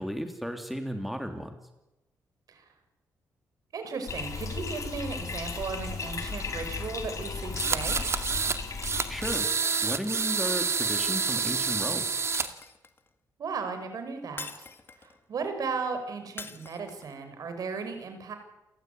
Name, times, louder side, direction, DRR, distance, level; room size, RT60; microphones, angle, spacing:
voice 1, 0.0-1.6 9.1-9.5 9.8-12.1, equal, ahead, 5 dB, 3.1 m, -34 dB
voice 2, 3.7-8.0 13.4-14.7 15.0-18.4, right 5 dB, 65° right, 7 dB, 5.7 m, -35 dB
Bathtub (filling or washing), 4.1-9.4, left 5 dB, 50° left, 4.3 m, -35 dB
sound 1, 7.5-8.6 8.8-12.5, right 5 dB, 40° right, 2.1 m, -28 dB
Shatter, 12.3-13.1 14.4-15.2 16.4-17.2, left 4 dB, 35° left, 2.0 m, -43 dB
28.5 x 14.5 x 9.4 m, 0.98 s
cardioid pair, 80°, 7 cm